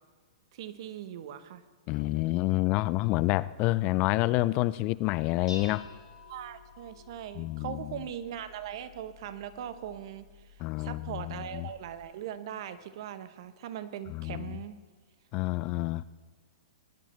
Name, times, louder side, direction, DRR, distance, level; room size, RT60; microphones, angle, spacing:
voice 1, 0.5-1.6 6.3-14.8, right 10 dB, 55° right, 11 dB, 1.0 m, -40 dB
voice 2, 1.9-5.9 7.4-8.0 10.6-11.7 14.1-14.6 15.3-16.0, left 19 dB, 40° left, 19 dB, 0.3 m, -28 dB
Dishes pots and pans, 5.0-12.0, left 4 dB, 80° left, 3.8 m, -51 dB
20.5 x 12.0 x 3.2 m, 1.5 s
hypercardioid pair, 115°, 3 cm